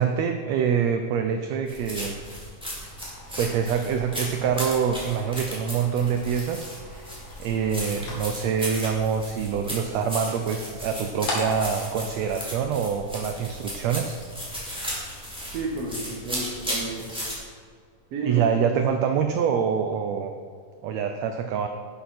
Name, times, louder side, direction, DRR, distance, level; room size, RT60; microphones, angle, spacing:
voice 1, 0.0-2.1 2.7-2.9 3.4-7.1 7.4-14.2 18.2-20.3 20.8-21.7, right 7 dB, 90° right, 6 dB, 1.5 m, -25 dB
sound 1, 1.7-17.3, equal, ahead, 2.0 m, -35 dB
sound 2, 2.8-13.2, left 2 dB, 50° left, 2.8 m, -41 dB
voice 2, 15.5-17.1 18.1-18.8, right 3 dB, 60° right, 0 dB, 1.8 m, -32 dB
11.0 x 7.8 x 4.3 m, 2.1 s
omnidirectional pair, 3.7 m